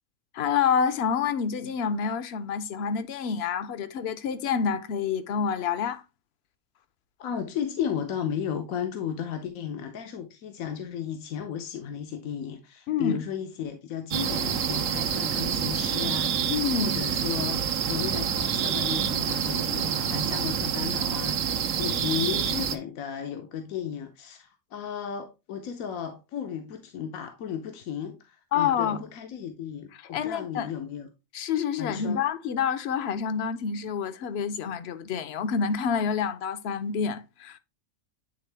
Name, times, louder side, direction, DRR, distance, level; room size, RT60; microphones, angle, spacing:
voice 1, 0.3-6.0 12.9-13.2 16.5-17.0 28.5-29.0 30.1-30.7 31.3-37.6, left 7 dB, 60° left, 0.7 m, -28 dB
voice 2, 7.2-31.1 31.8-32.2, left 8 dB, 85° left, 1.2 m, -34 dB
sound 1, 14.1-22.8, right 8 dB, 75° right, 1.0 m, -27 dB
9.0 x 3.6 x 3.3 m
omnidirectional pair, 1.4 m